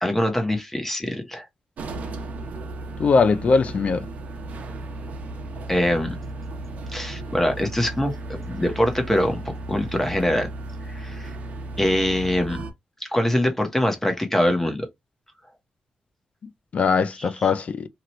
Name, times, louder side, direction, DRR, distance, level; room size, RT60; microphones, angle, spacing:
voice 1, 0.0-1.4 5.7-6.1 6.9-9.4 9.7-10.5 10.9-11.3 11.8-12.6 13.0-14.9 17.4-17.5, left 1 dB, 10° left, 1.1 m, -23 dB
sound 1, 1.8-12.7, right 2 dB, 70° right, 0.8 m, -35 dB
voice 2, 3.0-4.1 16.7-17.9, left 4 dB, 55° left, 0.4 m, -20 dB
2.9 x 2.4 x 3.1 m
cardioid pair, 80°, 3 cm